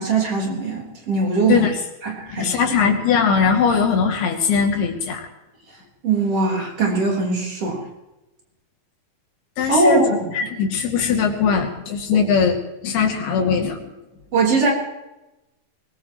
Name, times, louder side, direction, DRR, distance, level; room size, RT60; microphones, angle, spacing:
voice 1, 0.0-1.7 2.0-2.6 6.0-7.8 9.7-10.1 14.3-14.7, right 3 dB, 40° right, -1 dB, 4.8 m, -20 dB
voice 2, 2.3-5.2 9.6-10.0 10.3-13.9, left 6 dB, 85° left, 2 dB, 4.5 m, -20 dB
22.5 x 20.0 x 3.1 m, 1.0 s
omnidirectional pair, 4.4 m